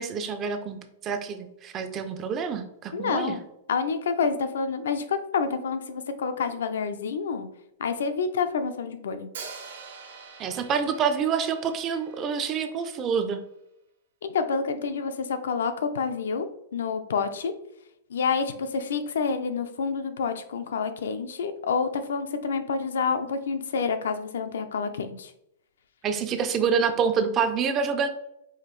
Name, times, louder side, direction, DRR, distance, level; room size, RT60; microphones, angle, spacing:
voice 1, 0.0-3.4 10.4-13.4 26.0-28.1, right 6 dB, 20° right, 8 dB, 0.3 m, -27 dB
voice 2, 2.9-3.4 3.7-7.5 7.8-9.3 14.2-16.5 16.7-17.5 18.1-25.3, left 5 dB, 90° left, 9 dB, 0.5 m, -28 dB
Hi-hat, 9.3-13.3, right 5 dB, 80° right, 1.0 m, -45 dB
4.8 x 2.6 x 3.0 m, 0.80 s
supercardioid pair, 175°, 0 cm